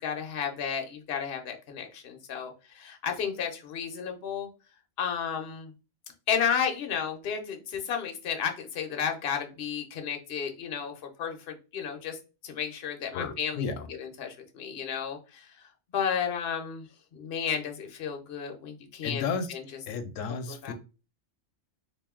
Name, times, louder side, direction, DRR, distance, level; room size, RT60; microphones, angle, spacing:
voice 1, 0.0-4.5 5.0-5.7 6.3-12.2 12.4-13.6 14.0-15.7 15.9-16.9 17.1-19.6 20.5-20.7, left 7 dB, 55° left, 0.9 m, -32 dB
voice 2, 13.1-13.9 19.0-19.5 19.9-20.7, left 5 dB, 90° left, 1.0 m, -33 dB
3.5 x 2.6 x 3.6 m
omnidirectional pair, 1.3 m